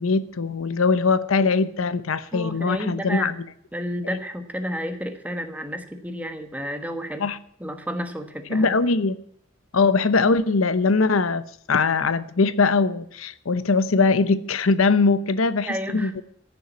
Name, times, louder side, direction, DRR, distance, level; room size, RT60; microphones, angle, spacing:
voice 1, 0.0-3.4 4.0-4.2 7.2-7.4 8.5-9.2 9.7-16.2, left 4 dB, 85° left, 0.8 m, -21 dB
voice 2, 2.3-3.3 3.7-7.3 7.6-8.7 15.7-16.1, equal, 10° right, 1.3 m, -31 dB
14.5 x 7.1 x 8.2 m
head